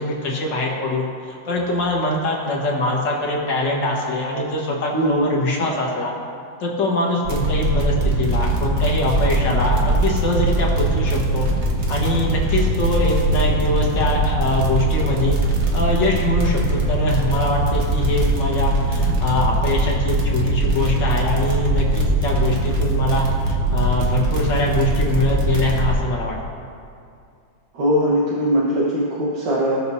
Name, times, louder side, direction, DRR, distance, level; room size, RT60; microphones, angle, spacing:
voice 1, 0.0-6.1 6.6-11.5 11.9-15.4 15.7-26.4, left 1 dB, 65° left, -3 dB, 2.2 m, -23 dB
voice 2, 4.9-5.3 27.7-29.8, equal, 65° right, -6 dB, 1.9 m, -20 dB
sound 1, 7.2-25.9, right 1 dB, 45° right, 1.1 m, -21 dB
18.0 x 6.7 x 2.8 m, 2.4 s
omnidirectional pair, 2.1 m